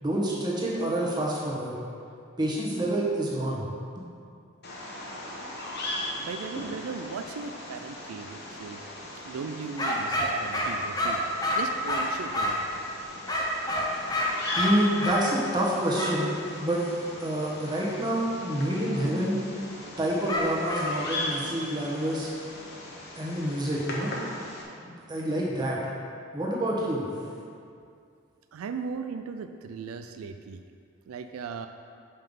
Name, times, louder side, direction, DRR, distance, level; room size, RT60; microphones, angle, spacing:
voice 1, 0.0-1.7 2.4-3.6 14.6-16.9 17.2-19.4 20.0-22.3 23.2-24.1 24.8-25.8 26.3-27.0, right 1 dB, 20° right, -5 dB, 1.2 m, -27 dB
Bird vocalization bird call bird song, 4.6-24.6, left 1 dB, 50° left, 1.1 m, -39 dB
voice 2, 6.2-8.8 9.2-11.2 11.5-12.6 28.5-30.6 31.1-31.7, right 5 dB, 85° right, 7 dB, 0.3 m, -37 dB
sound 1, 9.8-12.7 13.3-15.2 16.0-16.2 20.3-20.9, left 1 dB, 20° left, 0.7 m, -28 dB
5.5 x 5.5 x 5.4 m, 2.4 s
head